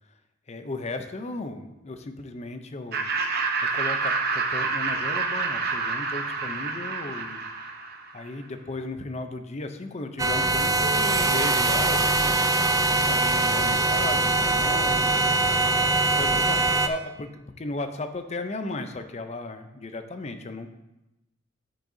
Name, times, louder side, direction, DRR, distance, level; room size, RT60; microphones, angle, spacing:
voice 1, 0.5-3.1 3.7-7.4 8.1-12.6 12.9-20.7, left 2 dB, 35° left, 8 dB, 0.6 m, -35 dB
Laughter, 2.9-8.2, right 4 dB, 50° right, 0.8 m, -28 dB
sound 1, 10.2-16.9, right 2 dB, 15° right, 0.3 m, -22 dB
8.5 x 7.8 x 2.7 m, 0.96 s
head